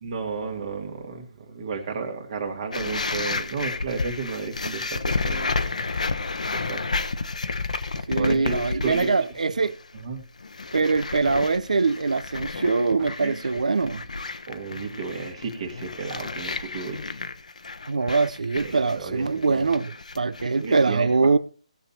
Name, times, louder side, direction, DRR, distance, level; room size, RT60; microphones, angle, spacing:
voice 1, 0.0-5.5 6.5-7.0 8.1-9.1 9.5-9.7 10.0-10.2 13.2-13.6 14.5-17.2 18.6-19.7 20.6-21.3, right 5 dB, 50° right, 2.2 m, -33 dB
sound 1, 2.7-9.3 9.6-10.0 10.4-20.9, left 3 dB, 80° left, 1.1 m, -31 dB
voice 2, 8.1-9.8 10.7-14.0 17.9-21.4, right 4 dB, 80° right, 0.6 m, -23 dB
17.0 x 7.2 x 4.2 m
figure-of-eight pair, 150°, 4 cm